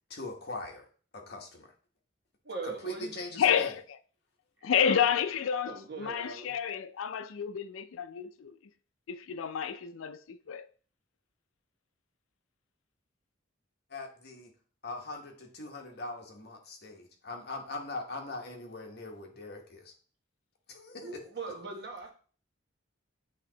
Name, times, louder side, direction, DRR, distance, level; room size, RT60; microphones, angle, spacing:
voice 1, 0.1-0.9 1.1-1.7 2.8-3.7 13.9-14.5 14.8-19.9 20.7-21.2, left 2 dB, 55° left, 1.2 m, -41 dB
voice 2, 2.4-3.1 4.6-5.0 5.6-6.5 20.9-22.1, right 3 dB, 55° right, 1.3 m, -41 dB
voice 3, 3.4-3.8 4.6-8.6 9.1-10.7, left 8 dB, 85° left, 0.4 m, -30 dB
8.4 x 2.9 x 3.9 m
head